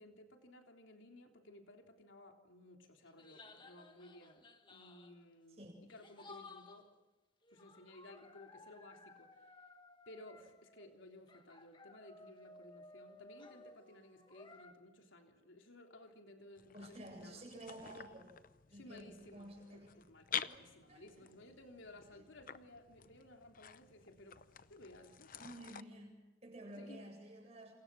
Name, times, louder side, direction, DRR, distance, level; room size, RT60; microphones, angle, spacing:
voice 1, 0.0-4.4 4.7-5.6 5.9-6.9 7.5-9.3 10.1-17.4 18.7-24.4 24.7-25.4 26.8-27.1, left 1 dB, 75° left, 3 dB, 3.5 m, -57 dB
sound 1, 3.0-5.2 5.9-6.9 7.4-10.9 11.3-14.7, left 2 dB, 25° left, 1.7 m, -58 dB
sound 2, 16.6-25.8, left 9 dB, 45° left, 0.7 m, -49 dB
voice 2, 16.7-18.3 18.7-19.9 20.4-21.3 22.1-22.2 25.4-27.7, right 1 dB, 30° right, 1 dB, 7.8 m, -52 dB
28.0 x 27.5 x 6.3 m, 1.2 s
head